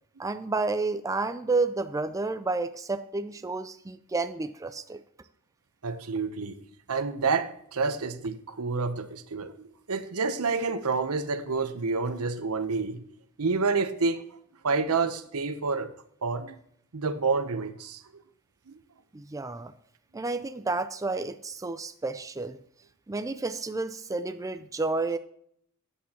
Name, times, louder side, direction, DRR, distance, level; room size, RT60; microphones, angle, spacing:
voice 1, 0.2-5.0 19.1-19.7 20.1-22.6 23.1-25.2, right 3 dB, 15° right, 0.4 m, -30 dB
voice 2, 5.8-6.6 6.9-13.0 13.4-14.2 14.6-15.9 16.2-16.5 16.9-18.0 18.7-18.8, right 4 dB, 85° right, 0.8 m, -28 dB
13.0 x 8.5 x 2.9 m
head